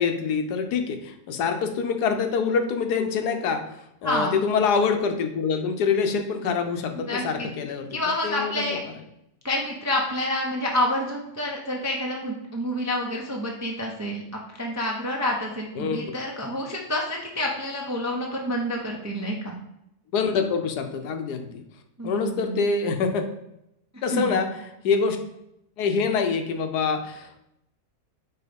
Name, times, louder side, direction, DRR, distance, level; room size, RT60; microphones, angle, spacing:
voice 1, 0.0-7.9 8.2-8.8 15.7-16.1 20.1-21.6 22.0-23.2 24.0-25.2 25.8-27.4, left 5 dB, 80° left, 6 dB, 1.3 m, -25 dB
voice 2, 4.0-4.4 7.1-7.5 7.9-8.8 9.4-19.6 22.0-22.5 24.1-24.3, left 1 dB, 20° right, -1 dB, 0.4 m, -28 dB
4.6 x 4.5 x 5.1 m, 0.83 s
omnidirectional pair, 1.7 m